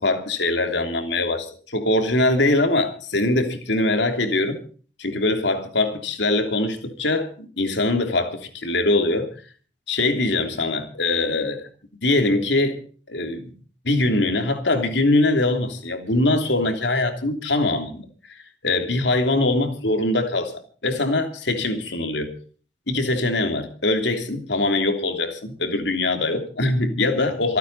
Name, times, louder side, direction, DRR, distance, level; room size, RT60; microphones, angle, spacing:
voice 1, 0.0-4.6 5.0-9.3 9.9-11.7 12.0-12.8 13.1-13.5 13.8-20.5 20.8-22.3 22.9-27.6, left 2 dB, 75° left, 3.2 m, -22 dB
27.5 x 9.3 x 4.2 m
head